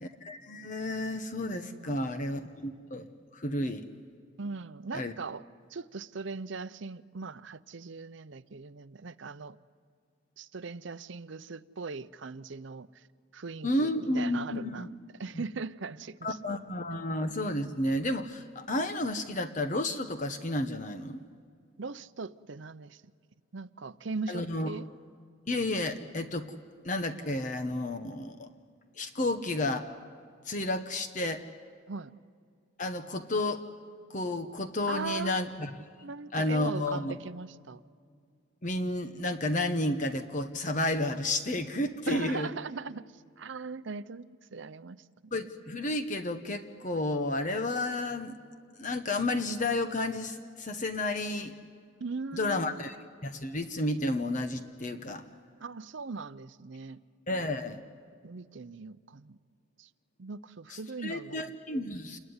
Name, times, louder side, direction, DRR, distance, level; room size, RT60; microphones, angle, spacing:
voice 1, 0.0-3.0 3.3-3.9 4.9-5.1 13.6-14.9 15.3-15.4 16.2-21.2 24.3-24.7 25.5-26.4 26.8-28.5 29.0-29.9 30.5-31.4 32.8-33.6 34.1-35.7 36.3-37.1 38.6-42.5 45.3-48.4 48.8-51.5 52.3-52.9 53.2-55.2 57.3-57.8 60.7-62.2, left 1 dB, 35° left, 8 dB, 1.1 m, -31 dB
voice 2, 1.6-2.2 4.4-5.4 5.7-9.6 10.4-12.9 13.3-14.9 15.2-16.4 21.8-23.0 23.5-24.9 31.9-32.1 34.9-35.5 36.0-37.8 42.1-45.3 52.0-52.8 55.6-57.0 58.2-59.4 59.8-59.9 60.2-61.5, right 4 dB, 65° right, 15 dB, 0.6 m, -40 dB
28.5 x 21.0 x 9.7 m, 2.2 s
head